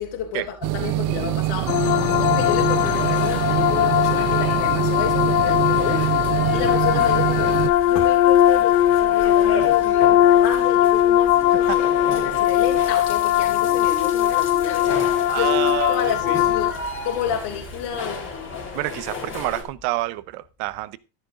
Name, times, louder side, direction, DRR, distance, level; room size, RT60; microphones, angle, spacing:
voice 1, 0.0-11.9 12.2-19.0, left 8 dB, 55° left, 3.1 m, -31 dB
sound 1, 0.6-7.7, right 17 dB, 45° right, 0.5 m, -24 dB
sound 2, 1.7-16.7, left 12 dB, 85° left, 1.0 m, -19 dB
sound 3, 1.9-19.6, left 3 dB, 25° left, 3.6 m, -34 dB
voice 2, 15.3-16.4 18.7-21.0, right 19 dB, 70° right, 1.0 m, -28 dB
12.5 x 10.5 x 3.7 m
cardioid pair, 155°, 49 cm